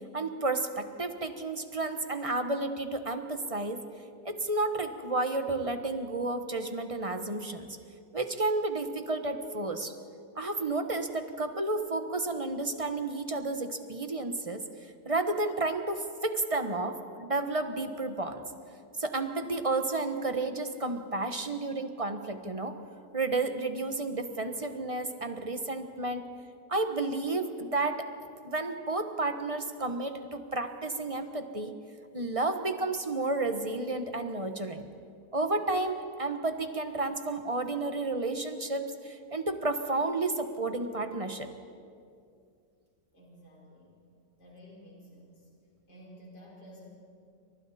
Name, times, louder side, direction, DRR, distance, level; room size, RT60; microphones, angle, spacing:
voice 1, 0.1-3.8 4.2-7.7 8.1-9.9 10.3-14.6 15.0-18.4 19.0-22.8 23.1-26.2 26.7-28.1 28.4-31.7 32.1-34.9 35.3-41.5, right 2 dB, 25° right, 7 dB, 1.0 m, -31 dB
voice 2, 43.1-44.0 44.4-45.5 45.9-46.9, equal, 70° left, -4 dB, 5.5 m, -52 dB
29.5 x 24.5 x 4.2 m, 2.4 s
omnidirectional pair, 1.8 m